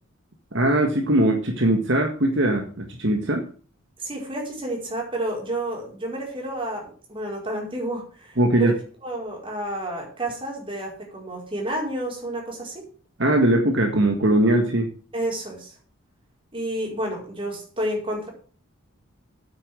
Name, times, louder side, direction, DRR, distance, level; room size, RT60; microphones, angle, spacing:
voice 1, 0.5-3.5 8.4-8.7 13.2-14.9, right 1 dB, 55° right, 3 dB, 1.8 m, -20 dB
voice 2, 4.0-8.7 9.0-12.9 15.1-15.7 16.5-18.3, right 1 dB, 25° right, -1 dB, 5.0 m, -30 dB
9.0 x 8.8 x 7.8 m, 0.42 s
head